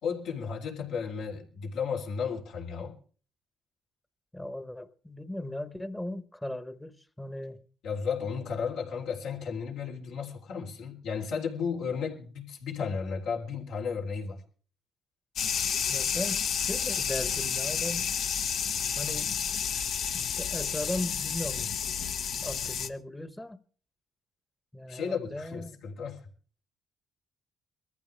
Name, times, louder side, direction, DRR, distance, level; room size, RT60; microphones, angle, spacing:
voice 1, 0.0-3.0 7.8-14.4 24.9-26.2, left 6 dB, 85° left, 3.3 m, -34 dB
voice 2, 4.3-7.7 15.9-18.1 19.0-19.4 20.1-21.7 22.4-23.6 24.7-25.8, left 1 dB, 10° left, 1.0 m, -37 dB
sound 1, 15.4-22.9, left 7 dB, 70° left, 0.9 m, -30 dB
22.5 x 14.5 x 3.4 m
cardioid pair, 90°, 0 cm